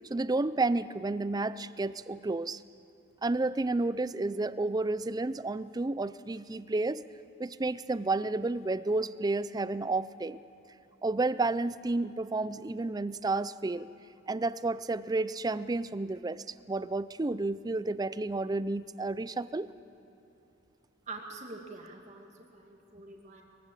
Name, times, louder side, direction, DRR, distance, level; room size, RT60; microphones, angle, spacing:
voice 1, 0.0-2.6 3.2-7.0 7.4-10.4 11.0-13.9 14.3-19.7, right 2 dB, 20° right, 16 dB, 0.4 m, -31 dB
voice 2, 21.1-23.4, right 3 dB, 35° right, 1 dB, 2.2 m, -45 dB
22.0 x 15.5 x 8.6 m, 2.9 s
head